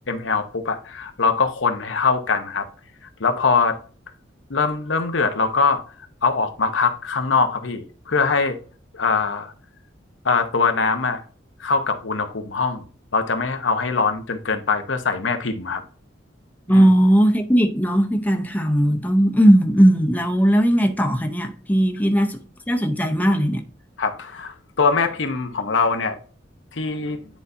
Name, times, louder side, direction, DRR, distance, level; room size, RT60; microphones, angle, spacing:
voice 1, 0.1-2.7 3.2-3.8 4.5-5.8 6.2-8.6 8.9-9.5 10.2-11.2 11.6-12.9 13.1-15.8 16.7-16.9 24.0-26.2 26.7-27.2, left 4 dB, 90° left, 0.9 m, -22 dB
voice 2, 16.7-22.4 22.7-23.6, equal, 10° left, 0.7 m, -18 dB
10.0 x 4.1 x 2.6 m
head